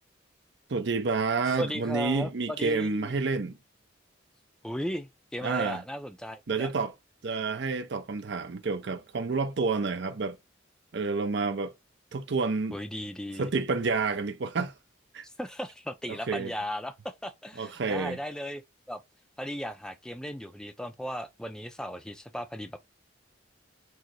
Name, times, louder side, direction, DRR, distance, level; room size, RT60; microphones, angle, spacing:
voice 1, 0.7-3.5 5.4-5.8 6.5-6.9 7.2-10.4 10.9-11.7 12.1-12.8 13.4-14.7 15.1-15.2 16.1-16.5 17.6-18.2, right 4 dB, 60° right, 0.5 m, -29 dB
voice 2, 1.4-3.1 4.6-6.7 12.7-13.5 15.2-18.6 18.9-19.0 19.4-22.9, equal, 5° left, 0.4 m, -36 dB
4.7 x 2.0 x 4.4 m
head